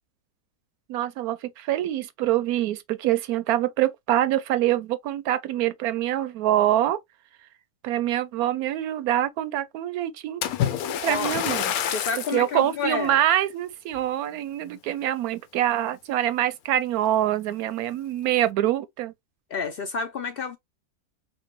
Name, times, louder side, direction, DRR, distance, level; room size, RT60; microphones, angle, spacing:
voice 1, 0.9-7.0 7.8-10.4 11.0-11.7 12.3-19.1, right 12 dB, 90° right, 1.1 m, -25 dB
Splash splatter, 10.4-12.5 13.1-13.3 13.9-14.0, left 9 dB, 80° left, 1.1 m, -27 dB
voice 2, 11.0-11.4 11.9-13.2 19.5-20.6, left 5 dB, 60° left, 0.6 m, -29 dB
4.4 x 2.2 x 3.1 m
omnidirectional pair, 1.5 m